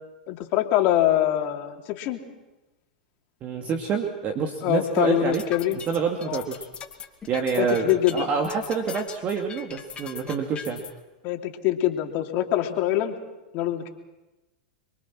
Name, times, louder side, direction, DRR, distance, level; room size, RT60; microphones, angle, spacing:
voice 1, 0.3-2.2 4.6-5.8 6.2-6.4 7.6-8.3 11.2-13.1 13.5-13.9, left 12 dB, 50° left, 3 dB, 3.1 m, -24 dB
voice 2, 3.4-5.4 5.9-6.7 7.3-10.8, right 6 dB, 35° right, 3 dB, 2.6 m, -27 dB
sound 1, 5.2-10.9, left 7 dB, 25° left, 2.6 m, -39 dB
28.0 x 23.5 x 6.3 m, 1.1 s
hypercardioid pair, 100°, 4 cm